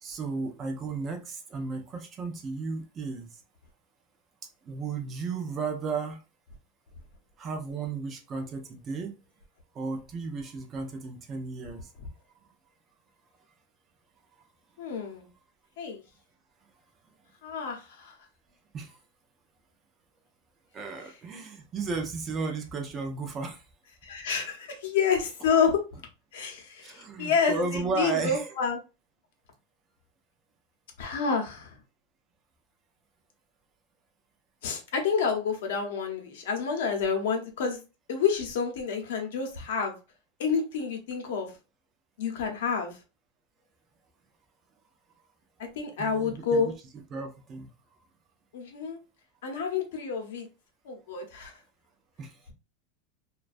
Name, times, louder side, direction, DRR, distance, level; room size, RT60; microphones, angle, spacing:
voice 1, 0.0-3.4 4.6-6.2 7.4-9.2 9.7-11.9 12.4-12.5 18.7-19.0 20.7-23.6 26.8-28.5 46.0-46.7 47.1-47.7 52.2-52.4, right 4 dB, 20° right, 3 dB, 0.3 m, -34 dB
voice 2, 14.8-15.3 15.8-16.0 17.4-18.2 24.0-25.8 26.3-28.8 31.0-31.8 34.6-37.8 38.1-39.9 40.4-41.5 42.2-43.0 45.8-46.7 48.5-49.0 49.4-50.5 50.8-51.5, left 6 dB, 75° left, 4 dB, 0.7 m, -29 dB
2.4 x 2.2 x 2.4 m, 0.30 s
supercardioid pair, 180°, 0 cm